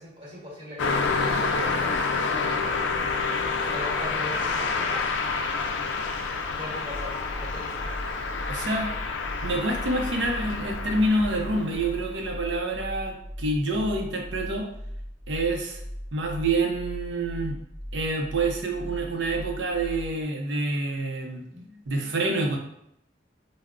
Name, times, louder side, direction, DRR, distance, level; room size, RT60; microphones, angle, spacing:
voice 1, 0.0-3.1 3.7-5.1 6.5-8.0 21.5-22.2, equal, 25° right, -7 dB, 1.2 m, -41 dB
Car passing by, 0.8-12.2, left 4 dB, 85° left, 0.3 m, -28 dB
sound 1, 6.9-20.2, equal, 5° right, 0.3 m, -38 dB
voice 2, 8.5-8.9 9.4-14.7 15.3-15.8 16.1-17.6 17.9-21.4 21.9-22.6, right 2 dB, 80° right, 2 dB, 0.5 m, -27 dB
3.5 x 2.0 x 2.3 m, 0.76 s
head